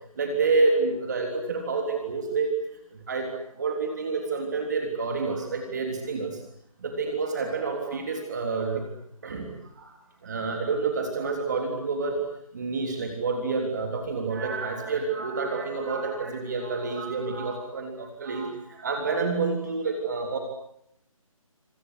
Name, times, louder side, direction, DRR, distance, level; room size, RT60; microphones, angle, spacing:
voice 1, 0.2-2.5 2.9-3.3 3.6-6.4 6.8-8.9 9.2-10.0 10.2-12.2 12.5-20.4, right 4 dB, 30° right, 3 dB, 3.6 m, -28 dB
27.0 x 26.0 x 8.2 m, 0.75 s
figure-of-eight pair, 170°, 18 cm